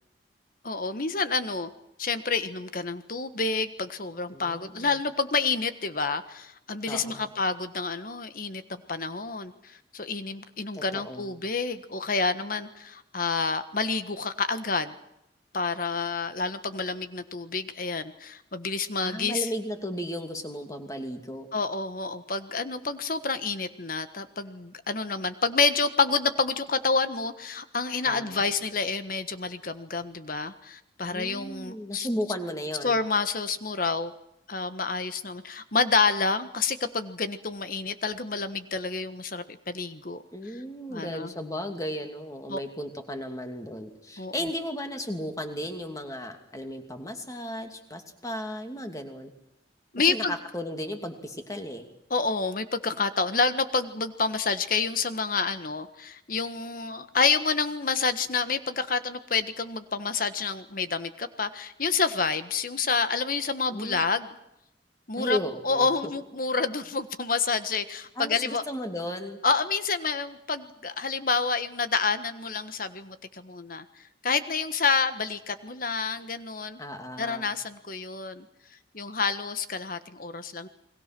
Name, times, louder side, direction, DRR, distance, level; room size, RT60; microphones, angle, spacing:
voice 1, 0.6-1.7 2.0-14.9 15.5-19.5 21.5-32.1 32.8-34.1 34.5-40.2 40.9-41.3 42.5-42.6 44.2-44.5 49.9-50.4 52.1-64.3 65.1-65.4 65.6-68.6 69.4-73.8 74.2-76.8 77.2-78.4 78.9-80.7, left 4 dB, 50° left, 11 dB, 1.4 m, -28 dB
voice 2, 4.3-5.0 6.9-7.3 10.7-11.3 19.0-21.5 28.0-28.4 31.0-33.0 40.3-49.3 50.0-51.9 63.7-64.0 65.2-65.9 68.2-69.4 76.8-77.5, equal, 20° left, 5 dB, 2.7 m, -35 dB
30.0 x 22.0 x 6.1 m, 0.83 s
head